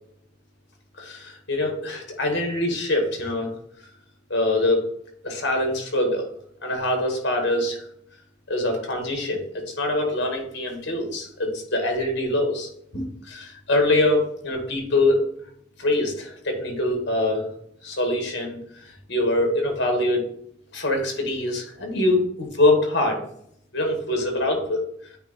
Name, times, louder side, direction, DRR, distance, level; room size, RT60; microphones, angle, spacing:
voice 1, 1.0-3.5 4.3-4.8 5.2-6.3 6.6-7.8 8.5-9.4 9.8-15.2 15.8-17.5 17.8-20.2 20.7-23.2 23.7-25.1, left 1 dB, 60° left, 2 dB, 1.7 m, -24 dB
8.9 x 3.0 x 4.2 m, 0.70 s
head